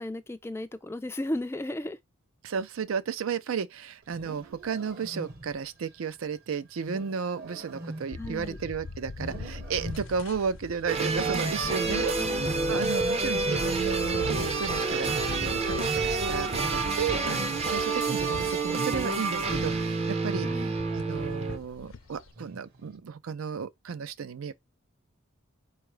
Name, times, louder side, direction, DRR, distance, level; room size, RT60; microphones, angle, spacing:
voice 1, 0.0-2.0 8.2-8.6 11.7-12.4 20.4-20.8, left 1 dB, 10° left, 0.3 m, -35 dB
voice 2, 2.4-12.1 12.7-15.1 15.4-24.5, right 6 dB, 75° right, 0.4 m, -33 dB
Wild animals, 4.0-5.7 6.8-8.7 9.1-10.3 10.9-12.0 12.3-14.8 15.0-19.9 20.3-20.8 21.2-21.6 22.3-22.8, right 1 dB, 45° right, 1.0 m, -40 dB
sound 1, 8.1-22.3, left 3 dB, 65° left, 0.6 m, -41 dB
sound 2, 10.9-21.6, right 4 dB, 30° right, 0.6 m, -28 dB
4.6 x 2.4 x 4.8 m
head